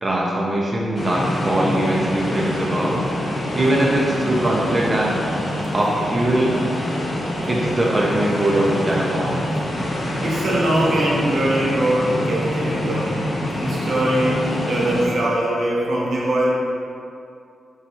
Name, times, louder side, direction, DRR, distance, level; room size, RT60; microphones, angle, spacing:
voice 1, 0.0-3.1 3.5-5.2 5.7-6.6 7.5-9.5 14.5-14.6, right 1 dB, 25° right, -4 dB, 0.4 m, -21 dB
sound 1, 0.9-15.1, left 1 dB, 40° left, 0.7 m, -25 dB
voice 2, 10.2-13.2 13.6-16.5, right 1 dB, 75° right, -5 dB, 0.9 m, -22 dB
3.9 x 2.3 x 4.3 m, 2.4 s
cardioid pair, 100°, 0 cm